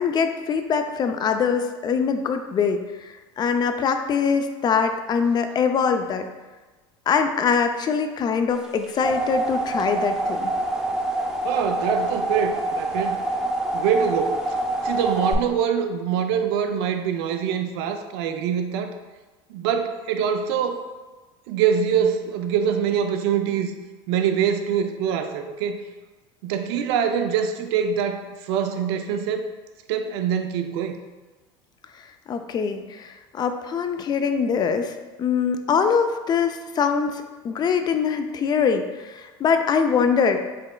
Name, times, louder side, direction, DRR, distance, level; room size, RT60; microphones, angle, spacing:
voice 1, 0.0-6.3 7.1-10.5 32.3-40.4, left 6 dB, 30° left, 7 dB, 0.4 m, -23 dB
sound 1, 8.6-15.3, right 2 dB, 5° right, 0.6 m, -26 dB
voice 2, 11.4-13.2 13.7-14.6 14.8-19.0 19.5-20.8 21.5-23.7 24.1-25.8 26.4-29.5 29.9-31.0, right 7 dB, 75° right, 7 dB, 0.5 m, -24 dB
5.1 x 3.6 x 2.2 m, 1.2 s
supercardioid pair, 100°, 14 cm